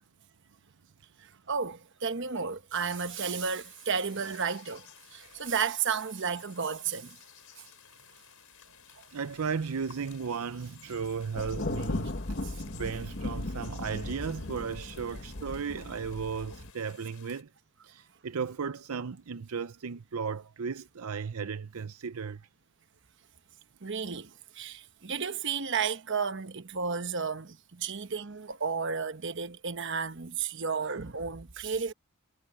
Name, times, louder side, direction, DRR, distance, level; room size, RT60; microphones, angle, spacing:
voice 1, 1.2-7.2 7.6-7.7 9.0-9.1 23.8-31.9, right 6 dB, 55° right, 1.1 m, -33 dB
sound 1, 2.9-17.4, left 10 dB, 80° left, 4.5 m, -55 dB
voice 2, 9.1-12.4 12.7-17.5 17.8-22.4 27.8-27.9, right 6 dB, 75° right, 0.6 m, -35 dB
Thunder, 11.4-16.7, left 2 dB, 50° left, 1.2 m, -37 dB
head